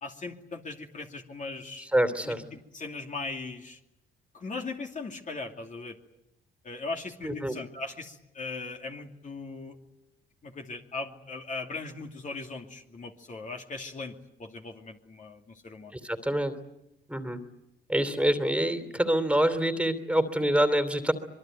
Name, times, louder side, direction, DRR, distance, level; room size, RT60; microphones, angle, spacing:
voice 1, 0.0-1.9 2.2-3.8 4.3-6.0 6.6-9.8 10.4-15.9, left 3 dB, 40° left, 2 dB, 2.7 m, -39 dB
voice 2, 1.9-2.4 7.2-7.5 15.9-16.5 17.1-17.4 17.9-21.1, right 1 dB, 5° right, 8 dB, 2.9 m, -26 dB
25.0 x 22.5 x 9.2 m, 0.88 s
cardioid pair, 90°, 20 cm